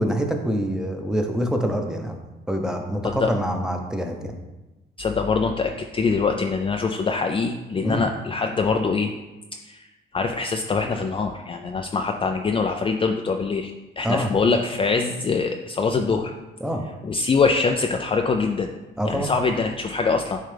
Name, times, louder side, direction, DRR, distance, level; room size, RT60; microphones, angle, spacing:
voice 1, 0.0-2.2 2.5-4.3 7.8-8.0 14.0-14.3 16.6-16.8 19.0-19.3, equal, 5° right, 4 dB, 0.8 m, -25 dB
voice 2, 5.0-9.1 9.7-9.9 10.1-16.3 17.0-18.7 19.1-20.4, left 4 dB, 25° left, 4 dB, 0.4 m, -23 dB
9.2 x 3.2 x 3.4 m, 1.1 s
cardioid pair, 90°, 20 cm